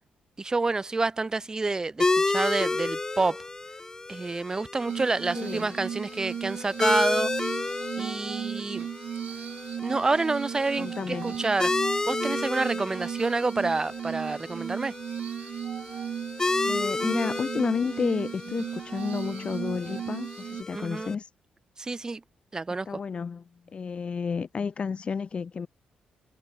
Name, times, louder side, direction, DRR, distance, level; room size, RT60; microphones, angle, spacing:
voice 1, 0.4-3.4 4.1-7.3 8.0-8.9 9.8-11.7 12.1-14.9 20.7-21.1 21.8-22.2 22.5-22.9, right 3 dB, 25° right, 2.0 m, -28 dB
sound 1, 2.0-21.1, left 3 dB, 20° left, 1.5 m, -32 dB
Glass, 4.9-20.6, right 9 dB, 70° right, 1.6 m, -36 dB
voice 2, 5.3-5.8 10.8-11.4 16.6-21.3 22.8-23.4 23.7-25.7, left 5 dB, 45° left, 6.6 m, -31 dB
cardioid pair, 80°, 3 cm